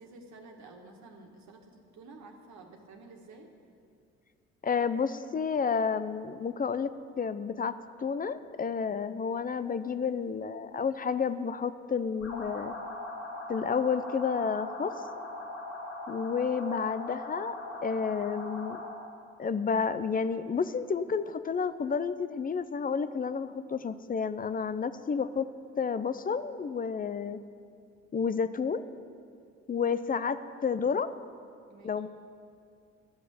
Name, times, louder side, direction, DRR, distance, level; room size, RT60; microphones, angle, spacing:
voice 1, 0.0-3.5 31.7-32.1, right 3 dB, 60° right, 2 dB, 1.7 m, -51 dB
voice 2, 4.6-6.9 7.2-7.7 8.0-12.7 13.5-14.9 16.1-17.5 17.8-18.8 19.4-25.5 25.8-27.4 28.1-28.8 29.7-31.1 31.8-32.1, left 6 dB, 25° left, 13 dB, 0.6 m, -30 dB
sound 1, 12.2-19.0, left 2 dB, 90° left, 2.5 m, -40 dB
12.0 x 6.4 x 8.3 m, 2.3 s
hypercardioid pair, 55°, 32 cm